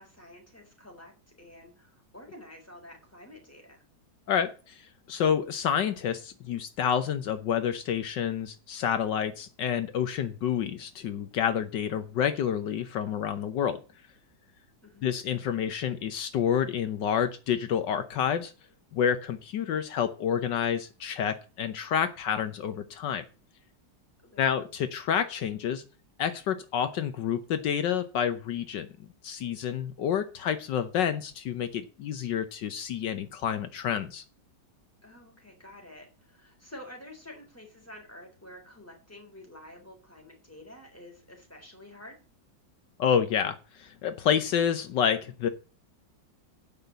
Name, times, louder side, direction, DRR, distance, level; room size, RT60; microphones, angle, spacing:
voice 1, 0.0-3.8 14.8-15.1 24.2-24.5 35.0-42.2, left 1 dB, 5° left, 2 dB, 3.9 m, -49 dB
voice 2, 4.3-4.8 5.1-13.8 15.0-18.5 18.9-23.2 24.4-25.8 26.2-28.9 29.2-34.2 43.0-45.5, left 8 dB, 75° left, 10 dB, 1.5 m, -29 dB
9.3 x 5.9 x 8.1 m, 0.33 s
omnidirectional pair, 2.0 m